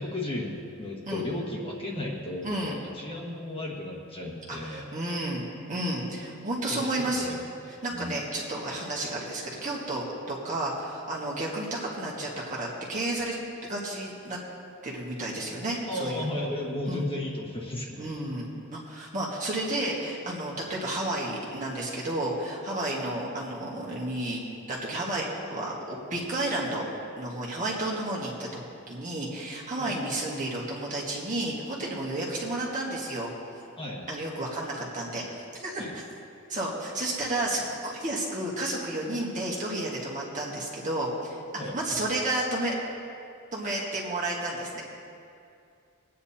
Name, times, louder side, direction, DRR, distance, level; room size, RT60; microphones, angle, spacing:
voice 1, 0.0-4.9 6.7-8.2 15.8-18.1 29.8-30.0 33.8-34.1 35.8-35.9 41.6-41.8, left 1 dB, 25° left, -4 dB, 1.5 m, -34 dB
voice 2, 2.4-2.8 4.5-7.3 7.6-13.4 13.6-14.4 14.8-16.3 16.9-17.1 18.0-24.4 24.7-26.8 27.2-28.5 28.9-33.3 34.1-36.0 36.5-41.4 41.7-42.7 43.5-44.8, right 1 dB, 35° right, -4 dB, 1.7 m, -32 dB
22.0 x 9.4 x 2.8 m, 2.5 s
head